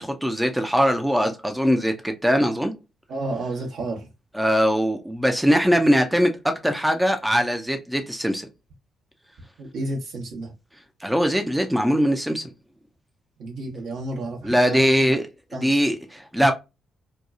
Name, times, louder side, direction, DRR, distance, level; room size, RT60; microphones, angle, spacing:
voice 1, 0.0-2.7 4.3-8.5 11.0-12.4 14.4-15.3 15.5-16.5, equal, 5° right, 0.5 m, -21 dB
voice 2, 3.1-4.1 9.6-10.5 13.4-15.2 15.5-15.9, right 2 dB, 65° right, 1.0 m, -31 dB
2.9 x 2.2 x 2.4 m
hypercardioid pair, 45°, 0 cm